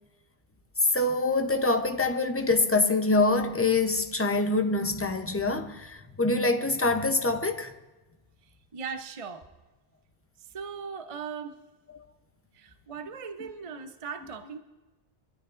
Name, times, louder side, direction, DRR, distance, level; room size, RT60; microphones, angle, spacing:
voice 1, 0.8-7.8 11.9-12.1 13.4-13.5, left 3 dB, 15° left, 0.6 m, -25 dB
voice 2, 8.7-9.5 10.4-11.6 12.5-14.6, right 6 dB, 35° right, 0.6 m, -38 dB
24.0 x 13.5 x 2.5 m
omnidirectional pair, 1.1 m